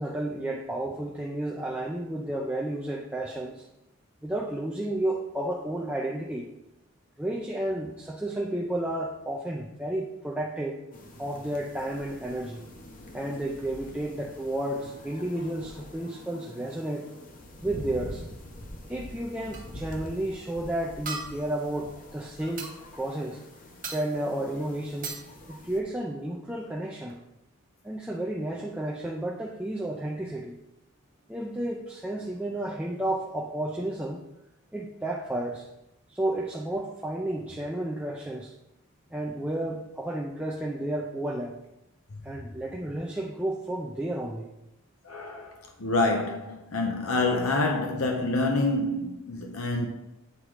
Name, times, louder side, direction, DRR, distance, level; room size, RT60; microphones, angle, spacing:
voice 1, 0.0-3.6 4.2-6.5 7.2-10.8 11.2-12.6 13.1-17.1 17.6-18.2 18.9-23.4 23.9-25.2 25.5-27.2 27.8-30.6 31.3-34.2 34.7-35.7 36.1-38.5 39.1-41.5 42.2-44.5, right 1 dB, 5° right, 0.5 m, -32 dB
sound 1, 10.9-25.8, left 1 dB, 40° left, 0.9 m, -45 dB
sound 2, 19.5-19.8 21.0-21.6 22.6-22.7 23.8-24.3 25.0-25.3 26.7-26.8 27.1-27.2, right 3 dB, 35° right, 1.1 m, -38 dB
voice 2, 45.0-49.9, left 2 dB, 75° left, 0.8 m, -27 dB
8.2 x 3.7 x 4.7 m
head